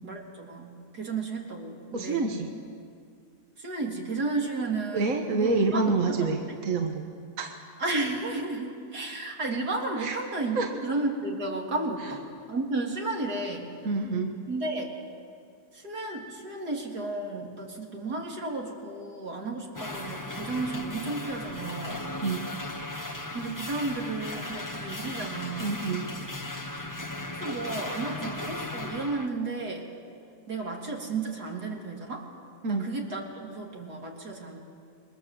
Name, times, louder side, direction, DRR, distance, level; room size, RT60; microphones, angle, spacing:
voice 1, 0.0-2.2 3.6-5.0 5.3-6.3 7.8-12.2 12.5-13.7 14.5-14.9 15.7-22.1 23.3-25.8 27.4-29.8 30.5-32.3 32.7-34.6, right 3 dB, 80° right, 0 dB, 3.8 m, -33 dB
voice 2, 1.9-2.5 4.9-7.0 7.4-7.5 10.0-10.2 10.6-10.7 12.0-12.1 13.8-14.3 22.2-22.4 25.6-26.1 32.6-32.9, right 3 dB, 55° right, 3 dB, 1.8 m, -27 dB
sound 1, 19.8-29.3, left 2 dB, 15° left, 1.2 m, -37 dB
28.0 x 22.5 x 7.8 m, 2.3 s
omnidirectional pair, 1.7 m